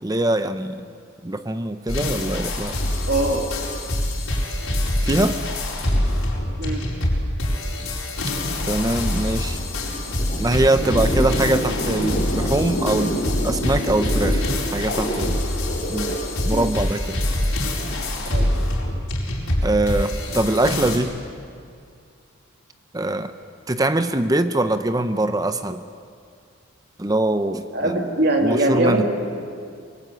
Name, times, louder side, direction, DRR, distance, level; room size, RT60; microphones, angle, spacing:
voice 1, 0.0-0.8 1.2-2.8 5.0-5.4 8.7-9.6 10.4-14.4 14.7-15.4 15.9-16.2 16.4-17.2 19.6-21.2 22.9-23.3 23.7-25.8 27.0-28.1 28.4-29.0, right 1 dB, 15° right, 10 dB, 0.7 m, -23 dB
sound 1, 1.9-21.0, left 1 dB, 75° left, 4.8 m, -25 dB
voice 2, 3.1-3.5 6.6-6.8 16.5-16.7 18.3-18.5 27.7-29.0, right 2 dB, 45° right, 2 dB, 2.5 m, -22 dB
sound 2, 9.3-16.7 17.6-18.1, equal, 35° left, 5.1 m, -29 dB
24.5 x 22.5 x 8.1 m, 2.3 s
head